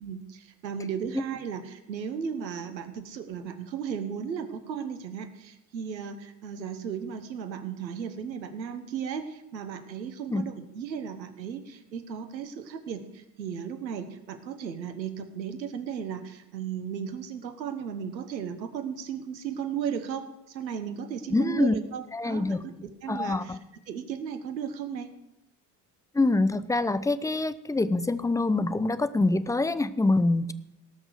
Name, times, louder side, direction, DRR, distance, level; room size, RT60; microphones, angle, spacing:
voice 1, 0.0-22.7 23.0-23.6 23.9-25.1, right 7 dB, 85° right, 9 dB, 1.3 m, -35 dB
voice 2, 21.3-21.7 22.1-22.6 23.1-23.6 26.1-30.5, left 2 dB, 5° left, 14 dB, 0.6 m, -25 dB
18.0 x 6.3 x 6.6 m, 0.85 s
hypercardioid pair, 65°, 50 cm